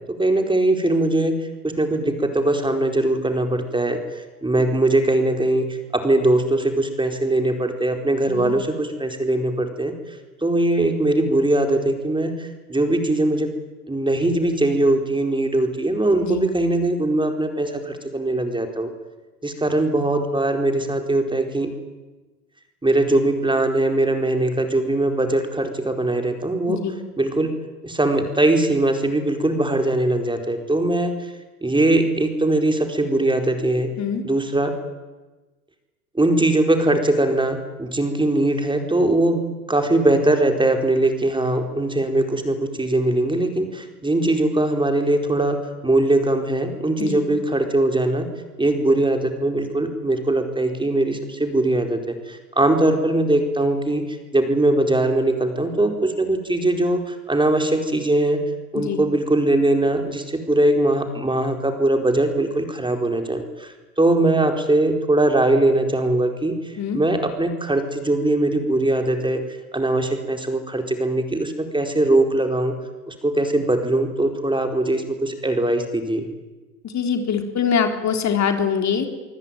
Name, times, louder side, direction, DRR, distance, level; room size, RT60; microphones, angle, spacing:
voice 1, 0.1-9.9 10.4-13.5 13.9-18.9 19.4-21.7 22.8-26.8 27.2-27.5 27.8-31.3 31.6-33.9 34.2-34.7 36.1-39.4 39.7-48.3 48.6-58.4 58.7-69.4 69.7-72.7 73.1-76.3, right 2 dB, 10° right, 5 dB, 4.5 m, -21 dB
voice 2, 76.8-79.1, left 6 dB, 35° left, 5 dB, 4.0 m, -23 dB
24.5 x 24.5 x 9.3 m, 1.2 s
hypercardioid pair, 70°, 45 cm